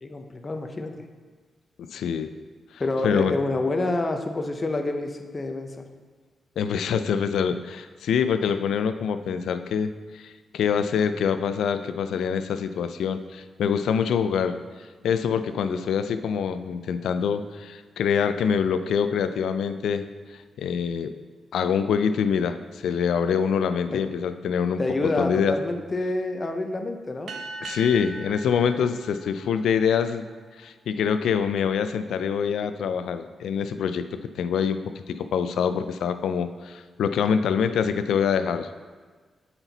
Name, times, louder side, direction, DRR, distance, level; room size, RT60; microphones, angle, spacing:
voice 1, 0.0-0.9 2.8-5.8 23.9-24.0 24.8-27.3, left 2 dB, 30° left, 5 dB, 0.6 m, -27 dB
voice 2, 1.8-2.3 3.0-3.3 6.6-14.6 15.0-20.0 20.6-21.1 21.5-24.8 25.2-25.5 27.6-30.3 30.6-34.1 34.4-34.8 35.1-38.7, left 7 dB, 85° left, 10 dB, 0.3 m, -25 dB
sound 1, 27.3-30.2, right 2 dB, 75° right, 0.7 m, -40 dB
8.0 x 4.4 x 4.0 m, 1.5 s
cardioid pair, 115°, 0 cm